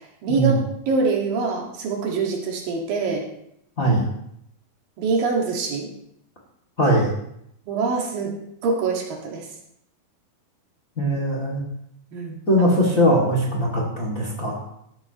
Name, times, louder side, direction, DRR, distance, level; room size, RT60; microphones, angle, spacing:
voice 1, 0.2-3.3 5.0-5.9 7.7-8.4 8.6-9.5 12.1-12.7, right 4 dB, 75° right, 0 dB, 3.6 m, -24 dB
voice 2, 3.8-4.1 6.8-7.1 11.0-11.6 12.5-14.6, equal, 25° left, -2 dB, 2.3 m, -20 dB
14.0 x 12.0 x 3.0 m, 0.75 s
omnidirectional pair, 4.1 m